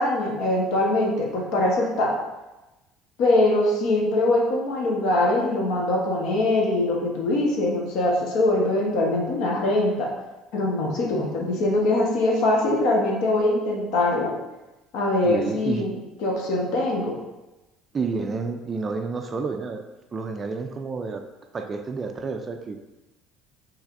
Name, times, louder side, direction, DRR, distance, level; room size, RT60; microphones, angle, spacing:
voice 1, 0.0-2.1 3.2-10.1 10.5-14.3 14.9-15.9 16.2-17.1, left 2 dB, 65° left, -1 dB, 1.1 m, -22 dB
voice 2, 15.2-15.9 17.9-19.8 20.1-21.2 21.5-22.8, right 4 dB, 25° right, 5 dB, 0.3 m, -30 dB
5.9 x 3.2 x 2.5 m, 1.1 s
cardioid pair, 155°, 0 cm